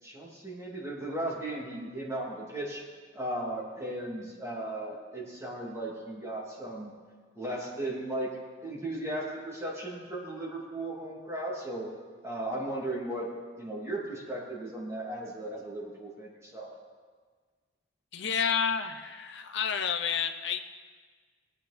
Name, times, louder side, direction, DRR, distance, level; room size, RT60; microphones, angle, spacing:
voice 1, 0.0-2.8 3.1-6.9 7.3-8.3 8.6-11.9 12.2-13.3 13.6-16.7, right 1 dB, 15° right, -4 dB, 2.7 m, -36 dB
voice 2, 18.1-20.6, left 7 dB, 60° left, 7 dB, 0.8 m, -30 dB
19.5 x 9.4 x 4.3 m, 1.5 s
head